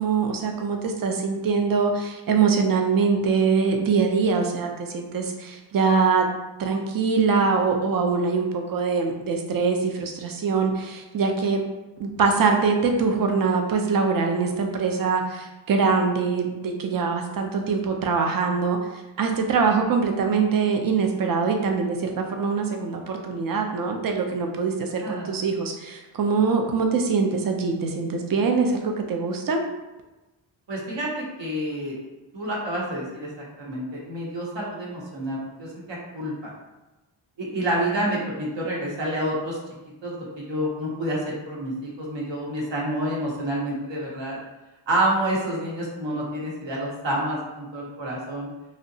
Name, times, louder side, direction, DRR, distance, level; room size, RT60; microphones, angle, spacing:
voice 1, 0.0-6.3 6.6-11.6 12.0-29.6, right 5 dB, 45° right, 3 dB, 0.4 m, -23 dB
voice 2, 25.0-25.3 30.7-32.0 32.3-33.3 33.6-36.5 37.4-39.6 40.0-44.4 44.9-48.5, right 1 dB, 65° right, -4 dB, 0.8 m, -28 dB
2.7 x 2.1 x 2.6 m, 1.1 s
wide cardioid pair, 95°, 49 cm